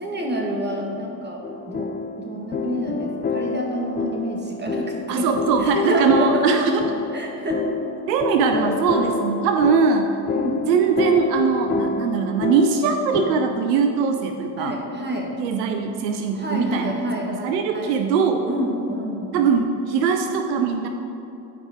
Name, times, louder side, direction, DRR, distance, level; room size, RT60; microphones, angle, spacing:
voice 1, 0.0-1.4 1.7-1.9 2.2-5.3 5.6-6.5 7.1-7.6 10.3-10.7 14.6-15.3 16.3-17.9 18.5-19.3, equal, 20° right, -1 dB, 2.1 m, -28 dB
sound 1, 1.4-13.7, left 4 dB, 20° left, 0.5 m, -28 dB
voice 2, 5.1-6.9 8.1-10.1 10.7-14.8 15.4-16.9 17.3-18.5 19.3-20.9, right 6 dB, 80° right, 5 dB, 0.7 m, -21 dB
13.0 x 4.8 x 4.4 m, 2.9 s
hypercardioid pair, 60°, 49 cm